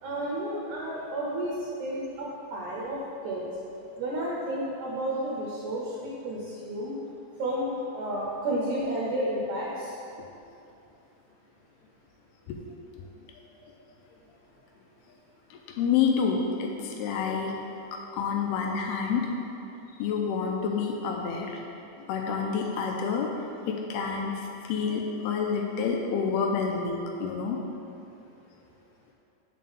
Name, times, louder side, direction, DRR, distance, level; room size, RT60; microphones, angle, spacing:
voice 1, 0.0-3.0 3.2-3.5 4.0-5.9 6.2-7.0 7.4-9.9, right 1 dB, 75° right, -4 dB, 1.8 m, -31 dB
voice 2, 15.5-17.5 17.9-19.3 20.0-21.6 22.1-23.3 23.7-27.6, left 6 dB, 85° left, 1 dB, 2.6 m, -28 dB
7.4 x 4.2 x 6.8 m, 2.7 s
omnidirectional pair, 4.7 m